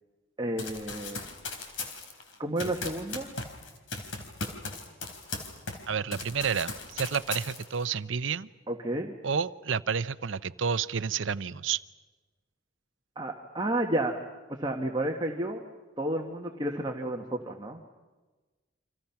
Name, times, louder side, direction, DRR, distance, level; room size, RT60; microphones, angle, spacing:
voice 1, 0.4-1.3 2.4-3.3 8.7-9.1 13.1-14.2 14.6-15.6 16.0-17.8, right 1 dB, 25° right, 1 dB, 1.5 m, -31 dB
Run, 0.6-5.9 6.1-7.9, left 3 dB, 85° left, 3.7 m, -38 dB
voice 2, 5.9-8.5 9.2-11.8, right 6 dB, 75° right, 15 dB, 0.7 m, -30 dB
29.5 x 26.0 x 5.8 m, 1.3 s
head